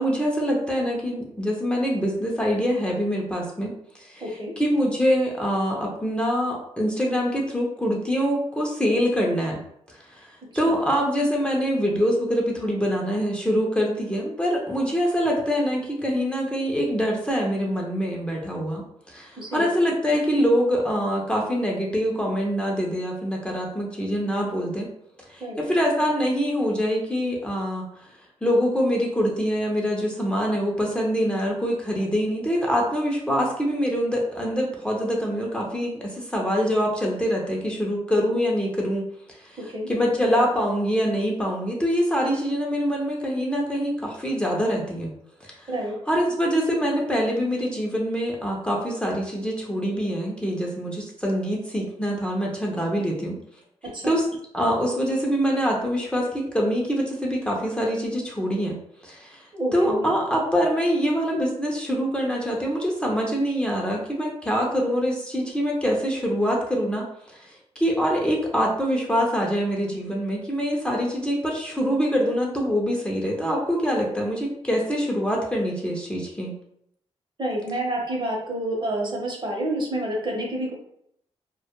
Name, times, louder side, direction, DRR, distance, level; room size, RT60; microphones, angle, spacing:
voice 1, 0.0-4.2 4.6-9.6 10.1-10.3 10.6-24.9 25.3-27.8 28.4-39.1 39.4-45.1 45.4-45.7 46.1-53.4 54.0-54.3 54.5-58.8 59.0-59.5 59.7-76.5, equal, 10° left, -2 dB, 0.5 m, -24 dB
voice 2, 4.2-4.5 10.6-10.8 19.4-19.6 25.4-25.6 39.7-39.9 45.7-45.9 53.9-54.1 59.5-60.1 77.4-80.7, right 1 dB, 45° right, -1 dB, 0.8 m, -28 dB
2.2 x 2.1 x 2.8 m, 0.71 s
cardioid pair, 65°, 12 cm